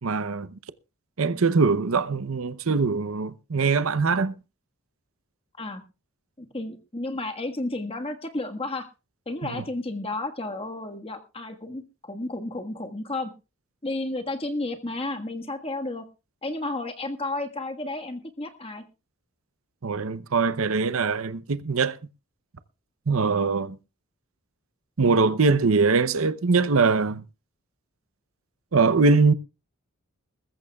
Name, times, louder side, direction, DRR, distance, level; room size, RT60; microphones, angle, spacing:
voice 1, 0.0-0.6 1.2-4.3 9.4-9.6 19.8-22.0 23.1-23.8 25.0-27.2 28.7-29.3, right 4 dB, 70° right, 0.7 m, -22 dB
voice 2, 6.4-8.9 9.2-13.3 13.8-16.0 16.4-18.8, left 2 dB, 25° left, 1.6 m, -32 dB
21.0 x 14.0 x 2.3 m
head